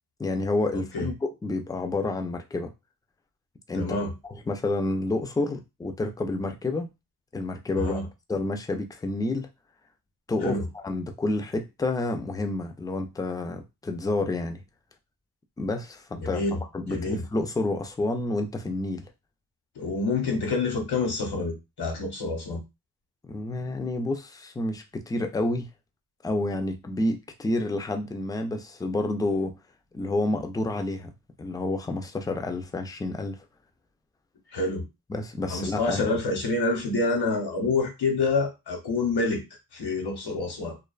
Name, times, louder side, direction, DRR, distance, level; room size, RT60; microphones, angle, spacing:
voice 1, 0.2-2.7 3.7-4.1 4.5-6.9 7.3-8.0 8.3-9.5 10.3-14.6 15.6-16.4 16.7-19.1 23.3-25.7 26.2-29.5 29.9-31.1 31.4-33.4 35.1-36.0, left 2 dB, 10° left, 0.3 m, -29 dB
voice 2, 0.7-1.1 3.7-4.1 7.7-8.1 10.4-10.6 16.2-17.2 19.8-22.6 34.5-34.9 35.5-39.4 39.7-40.8, left 3 dB, 75° left, 0.9 m, -27 dB
2.4 x 2.2 x 2.3 m
cardioid pair, 70°, 40 cm